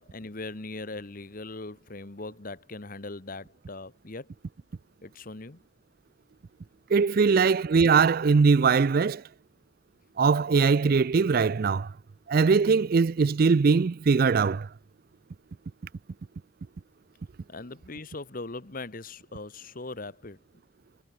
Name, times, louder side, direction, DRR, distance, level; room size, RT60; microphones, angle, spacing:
voice 1, 0.0-4.3 5.0-5.6 17.5-20.4, left 2 dB, 45° left, 1.2 m, -40 dB
voice 2, 6.9-9.2 10.2-11.9 12.3-14.7, right 5 dB, 45° right, 0.4 m, -21 dB
head